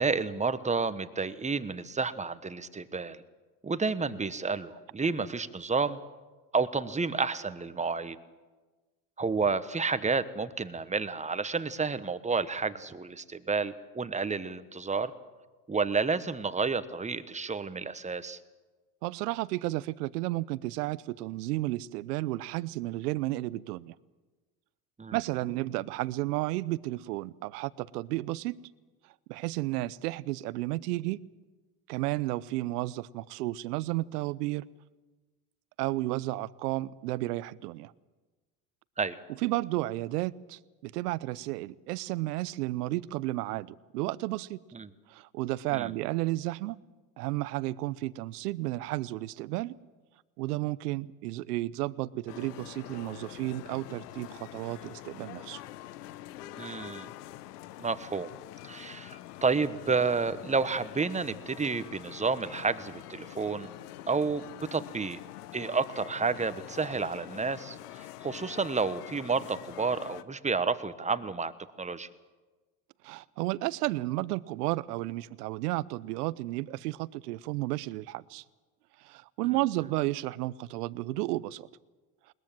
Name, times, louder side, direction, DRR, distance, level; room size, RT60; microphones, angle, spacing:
voice 1, 0.0-3.2 3.6-6.0 6.5-8.2 9.2-15.1 15.7-18.4 25.0-25.2 39.0-39.2 44.7-44.9 45.7-45.9 56.6-57.1 57.8-58.3 58.6-63.7 64.1-64.4 64.7-65.2 65.5-71.5 71.8-72.1, right 4 dB, 15° right, 13 dB, 1.2 m, -30 dB
voice 2, 19.0-23.9 25.1-28.6 29.3-31.2 31.9-34.7 35.8-37.9 39.4-44.6 45.1-46.8 47.2-49.8 50.4-55.6 73.0-78.4 79.0-81.7, right 18 dB, 75° right, 21 dB, 0.8 m, -32 dB
sound 1, 52.3-70.2, left 14 dB, 75° left, 1.0 m, -45 dB
21.0 x 20.5 x 7.6 m, 1.3 s
hypercardioid pair, 75°, 47 cm